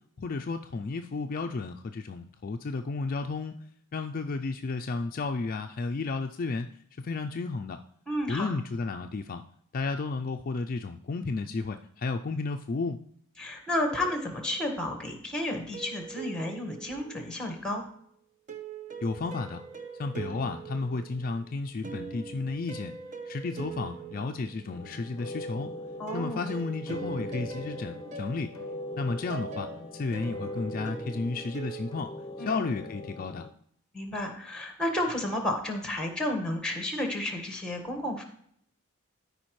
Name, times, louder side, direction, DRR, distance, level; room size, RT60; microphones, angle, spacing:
voice 1, 0.2-3.5 3.9-7.8 8.3-9.4 9.7-13.0 19.0-19.6 20.0-22.9 23.3-25.7 26.1-28.5 29.0-33.5, left 3 dB, 40° left, 6 dB, 0.4 m, -33 dB
voice 2, 8.1-8.5 13.4-17.8 26.0-26.5 32.4-32.7 33.9-38.2, left 1 dB, 5° left, 3 dB, 1.5 m, -32 dB
sound 1, 13.9-14.9 15.7-17.6 18.5-25.2 26.1-32.0, right 4 dB, 35° right, 0.9 m, -42 dB
sound 2, 24.7-33.5, left 1 dB, 20° left, 0.8 m, -41 dB
13.0 x 5.0 x 3.1 m, 0.67 s
head